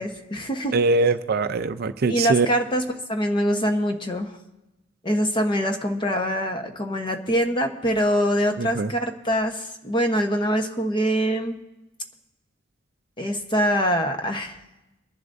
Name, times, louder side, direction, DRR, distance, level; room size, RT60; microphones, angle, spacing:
voice 1, 0.0-0.7 2.1-2.8 3.1-4.3 5.0-11.6 13.2-14.6, equal, 25° left, 4 dB, 1.1 m, -24 dB
voice 2, 0.7-2.5 8.6-8.9, right 3 dB, 50° right, 10 dB, 0.5 m, -22 dB
23.5 x 11.0 x 2.7 m, 0.99 s
head